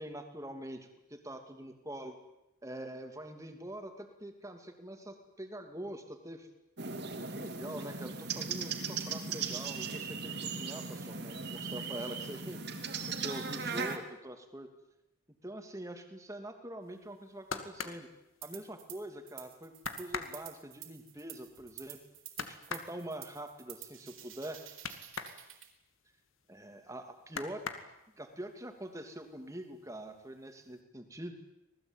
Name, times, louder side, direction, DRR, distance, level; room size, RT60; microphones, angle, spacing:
voice 1, 0.0-2.2 2.6-6.5 7.0-14.7 15.4-18.1 18.4-19.7 20.0-22.0 22.5-24.6 26.5-27.6 28.2-31.3, right 1 dB, 15° right, 6 dB, 2.7 m, -44 dB
sound 1, 6.8-14.0, right 5 dB, 50° right, 2.7 m, -38 dB
sound 2, 17.1-19.0 19.4-19.5 19.8-25.4 25.7-26.9 27.2-28.3 28.8-29.4 29.7-30.4 30.7-30.8, left 5 dB, 75° left, 2.3 m, -42 dB
sound 3, 18.4-19.0 19.3-25.7, right 13 dB, 70° right, 4.1 m, -50 dB
26.5 x 19.5 x 9.1 m, 0.90 s
head